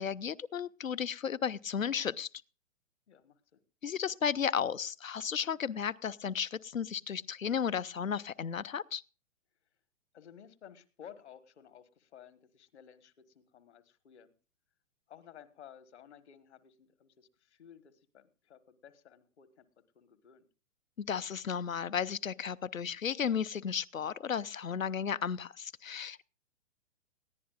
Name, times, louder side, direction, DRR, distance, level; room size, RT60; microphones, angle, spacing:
voice 1, 0.0-2.3 3.8-9.0 21.0-26.2, left 7 dB, 85° left, 19 dB, 0.6 m, -34 dB
voice 2, 3.1-3.6 10.1-14.3 15.1-19.6 19.9-20.5, left 9 dB, 60° left, 13 dB, 1.5 m, -55 dB
20.0 x 14.5 x 2.4 m, 0.36 s
figure-of-eight pair, 115°, 39 cm